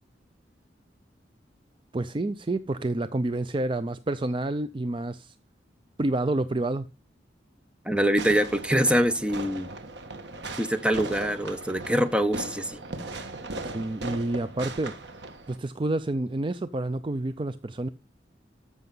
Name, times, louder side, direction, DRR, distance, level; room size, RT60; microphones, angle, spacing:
voice 1, 1.9-5.3 6.0-6.9 13.6-14.9 15.5-17.9, right 2 dB, 30° right, 0.5 m, -29 dB
voice 2, 7.8-9.7 10.6-12.8, equal, 5° right, 1.0 m, -24 dB
Fireworks, 8.2-15.6, right 2 dB, 85° right, 1.6 m, -38 dB
13.5 x 6.2 x 5.5 m
head